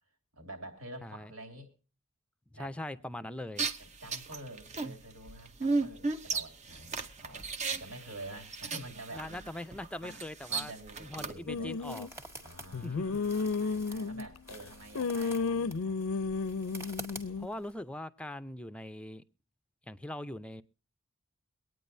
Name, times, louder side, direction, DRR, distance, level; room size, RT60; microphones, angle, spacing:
voice 1, 0.3-1.7 2.5-2.7 3.8-9.5 10.0-10.2 10.5-11.7 12.4-15.9 17.3-17.4, right 1 dB, 75° right, 5 dB, 2.7 m, -48 dB
voice 2, 2.5-3.7 9.1-10.7 11.0-12.1 12.8-13.2 17.4-19.2 19.8-20.6, left 1 dB, 5° left, 12 dB, 0.6 m, -41 dB
sound 1, 3.6-11.3, right 4 dB, 35° right, 0.8 m, -35 dB
sound 2, 10.6-17.7, right 1 dB, 10° right, 1.6 m, -49 dB
sound 3, 11.5-12.1 12.7-14.5 14.9-17.5, left 4 dB, 75° left, 0.5 m, -33 dB
23.5 x 9.4 x 2.7 m, 0.36 s
head